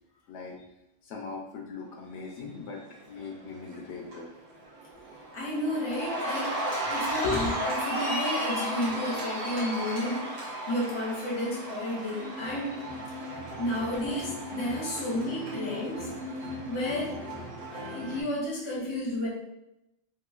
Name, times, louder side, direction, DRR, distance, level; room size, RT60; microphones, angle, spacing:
voice 1, 0.3-0.6 1.0-4.3 6.7-7.5 8.8-8.9, left 4 dB, 75° left, 0 dB, 0.9 m, -38 dB
Cheering, 3.3-3.7 4.1-18.2, right 1 dB, 40° right, 0.7 m, -34 dB
voice 2, 5.3-6.5 6.9-12.7 13.6-16.1 16.7-17.2 17.7-19.3, left 1 dB, 30° left, -4 dB, 0.6 m, -32 dB
2.9 x 2.4 x 2.3 m, 0.88 s
omnidirectional pair, 1.2 m